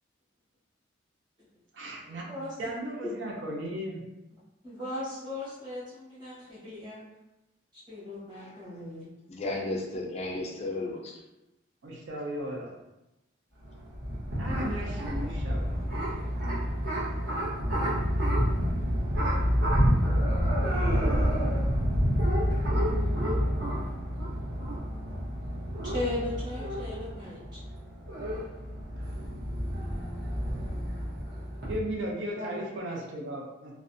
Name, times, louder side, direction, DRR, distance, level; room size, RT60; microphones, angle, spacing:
voice 1, 1.7-2.2 2.6-4.0 11.8-12.7 14.3-16.3 29.0-29.2 31.7-33.7, right 1 dB, 70° right, -1 dB, 0.5 m, -36 dB
voice 2, 4.6-7.0 7.9-9.1 25.8-27.6 32.4-32.6, left 1 dB, 25° right, -9 dB, 1.0 m, -37 dB
voice 3, 8.3-8.8 9.3-11.2, left 2 dB, 35° left, -1 dB, 0.3 m, -34 dB
sound 1, 13.6-31.7, equal, 55° right, 0.9 m, -28 dB
2.5 x 2.1 x 2.6 m, 0.95 s
head